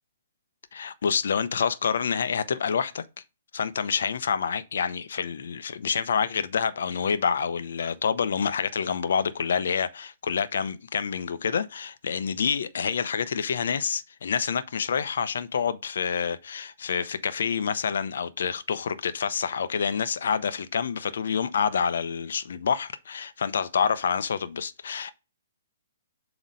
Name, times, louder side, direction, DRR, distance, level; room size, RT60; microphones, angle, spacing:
voice 1, 0.7-3.0 3.5-25.1, left 6 dB, 70° left, 0.7 m, -27 dB
7.3 x 3.0 x 5.3 m
hypercardioid pair, 140°, 0 cm